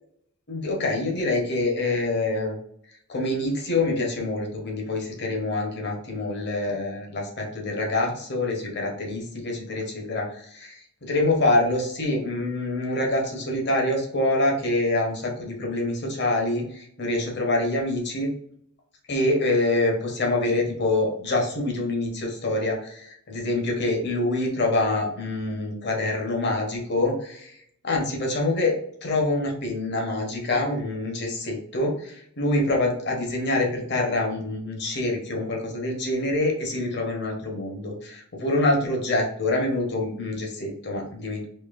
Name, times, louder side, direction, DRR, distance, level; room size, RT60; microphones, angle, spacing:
voice 1, 0.5-2.6 3.1-18.3 19.1-27.5 27.8-28.7 29.0-41.5, left 2 dB, 50° left, 0 dB, 1.0 m, -26 dB
4.3 x 2.8 x 2.5 m, 0.69 s
head